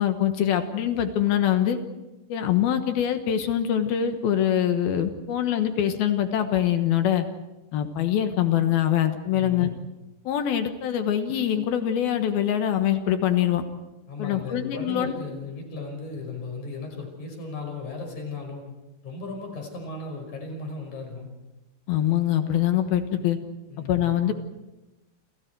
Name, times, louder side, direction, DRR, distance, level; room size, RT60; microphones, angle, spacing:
voice 1, 0.0-1.8 2.3-7.3 7.7-9.7 10.3-13.6 14.2-15.1 21.9-23.4 23.9-24.3, left 10 dB, 70° left, 7 dB, 2.9 m, -24 dB
voice 2, 9.3-9.8 14.1-18.6 19.0-21.3 23.7-24.1, left 3 dB, 45° left, 3 dB, 6.8 m, -36 dB
29.0 x 28.0 x 4.6 m, 1.0 s
omnidirectional pair, 5.0 m